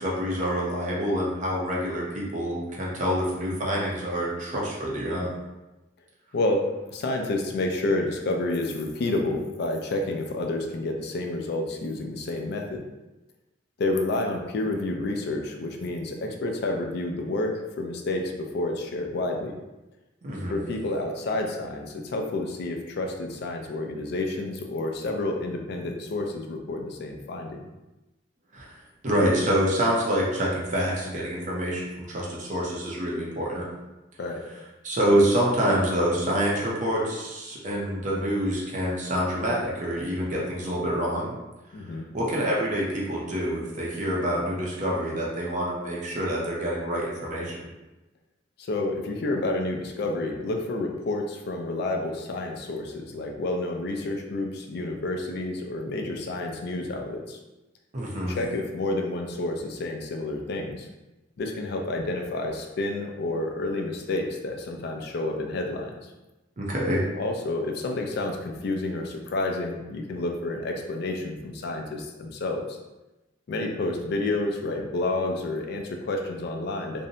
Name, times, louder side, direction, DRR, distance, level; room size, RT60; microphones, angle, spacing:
voice 1, 0.0-5.3 20.2-20.6 28.5-28.6 29.0-33.6 34.8-41.3 42.1-47.7 57.9-58.4 66.6-67.0, equal, 40° right, -4 dB, 0.6 m, -26 dB
voice 2, 6.3-12.8 13.8-19.6 20.5-27.7 34.2-34.4 41.7-42.1 48.6-57.4 58.3-60.9 61.4-65.9 67.2-72.8 73.5-77.1, left 2 dB, 60° left, 2 dB, 0.4 m, -29 dB
2.6 x 2.0 x 2.7 m, 1.0 s
head